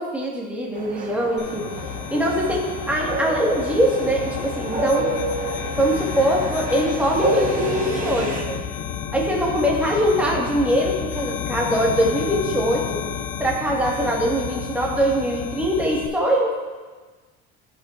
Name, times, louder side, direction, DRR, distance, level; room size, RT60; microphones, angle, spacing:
voice 1, 0.0-1.6 2.1-2.6 2.9-5.1 5.8-8.6 9.1-13.0 13.4-16.6, equal, 5° right, -3 dB, 1.6 m, -22 dB
sound 1, 0.7-8.4, right 2 dB, 25° right, 1.2 m, -29 dB
sound 2, 1.4-16.1, left 8 dB, 85° left, 0.8 m, -31 dB
15.5 x 5.7 x 2.5 m, 1.4 s
cardioid pair, 145°, 31 cm